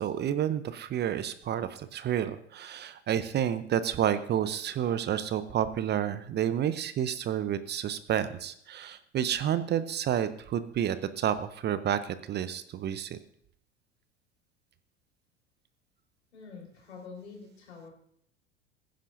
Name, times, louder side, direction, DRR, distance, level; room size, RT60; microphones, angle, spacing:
voice 1, 0.0-13.2, right 10 dB, 30° right, 13 dB, 0.7 m, -30 dB
voice 2, 16.3-17.9, left 5 dB, 75° left, 1 dB, 4.5 m, -46 dB
21.0 x 10.5 x 2.6 m, 0.67 s
figure-of-eight pair, 75°, 34 cm